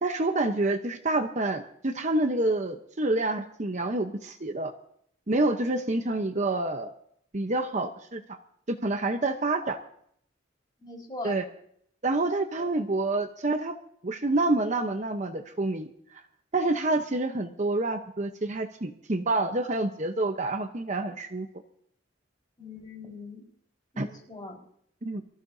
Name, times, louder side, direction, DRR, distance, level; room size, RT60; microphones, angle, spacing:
voice 1, 0.0-4.7 5.3-6.9 7.3-8.4 8.7-9.8 11.2-11.4 12.0-13.8 14.0-15.9 16.5-21.5 24.0-24.1 25.0-25.2, right 2 dB, 40° right, 7 dB, 0.9 m, -28 dB
voice 2, 10.8-11.4 12.6-12.7 22.6-23.5 23.9-24.6, left 2 dB, 25° left, 0 dB, 4.5 m, -40 dB
24.5 x 15.0 x 2.7 m, 0.67 s
head